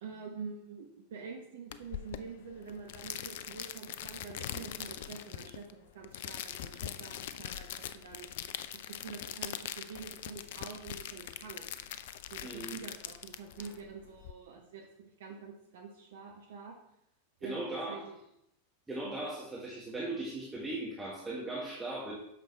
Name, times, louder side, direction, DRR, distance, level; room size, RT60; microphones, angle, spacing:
voice 1, 0.0-8.3 8.9-11.7 12.3-16.8 17.4-18.2 19.0-19.2, right 5 dB, 60° right, 2 dB, 1.0 m, -46 dB
sound 1, 1.7-14.3, left 11 dB, 55° left, 0.4 m, -42 dB
voice 2, 12.4-12.7 13.6-13.7 17.4-18.1 18.9-22.1, right 2 dB, 10° right, -5 dB, 1.6 m, -38 dB
8.5 x 6.3 x 3.4 m, 0.78 s
figure-of-eight pair, 90°, 0 cm